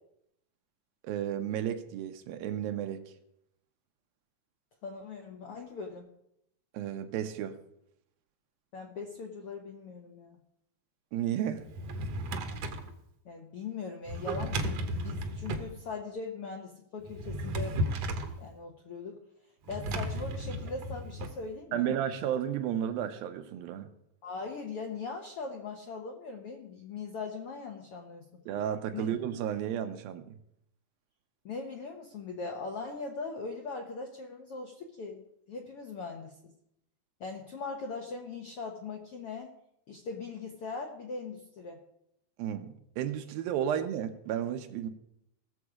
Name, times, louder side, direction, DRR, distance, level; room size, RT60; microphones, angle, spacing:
voice 1, 1.0-3.0 6.7-7.6 11.1-11.7 21.7-23.9 28.5-30.4 42.4-44.9, right 10 dB, 85° right, 8 dB, 2.6 m, -33 dB
voice 2, 4.8-6.1 8.7-10.4 13.2-17.8 18.4-19.2 19.7-21.9 24.2-28.4 28.9-29.0 31.4-36.5 37.2-39.5 39.9-41.8 43.7-43.8, left 4 dB, 75° left, 2 dB, 1.3 m, -40 dB
Drawer open or close, 11.6-12.9 14.1-15.7 17.0-18.4 19.7-21.3, right 1 dB, 65° right, 1.7 m, -34 dB
18.0 x 7.2 x 4.9 m, 0.77 s
omnidirectional pair, 4.2 m